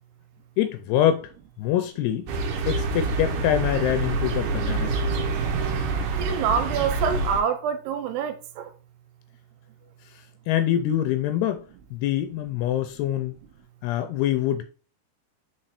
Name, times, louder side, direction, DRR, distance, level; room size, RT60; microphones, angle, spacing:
voice 1, 0.6-1.3 1.6-2.3 2.7-5.0 10.5-11.6 11.9-13.4 13.8-14.6, left 11 dB, 80° left, 2.6 m, -24 dB
sound 1, 2.3-7.4, right 3 dB, 65° right, 2.2 m, -26 dB
voice 2, 6.2-8.7, right 7 dB, 80° right, 2.7 m, -26 dB
6.2 x 4.4 x 4.2 m
omnidirectional pair, 4.8 m